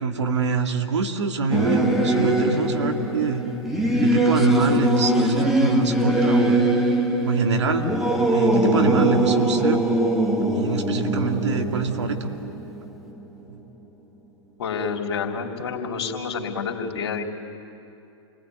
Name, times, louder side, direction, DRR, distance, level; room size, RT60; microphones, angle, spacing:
voice 1, 0.0-3.5 4.0-6.6 7.2-8.0 8.3-9.8 10.5-12.3 13.5-13.6, right 5 dB, 75° right, 4 dB, 2.3 m, -25 dB
Singing / Musical instrument, 1.5-13.4, right 1 dB, ahead, 2.4 m, -22 dB
voice 2, 14.6-17.2, left 5 dB, 65° left, 2 dB, 3.3 m, -28 dB
29.0 x 20.0 x 9.2 m, 2.7 s
figure-of-eight pair, 110°, 15 cm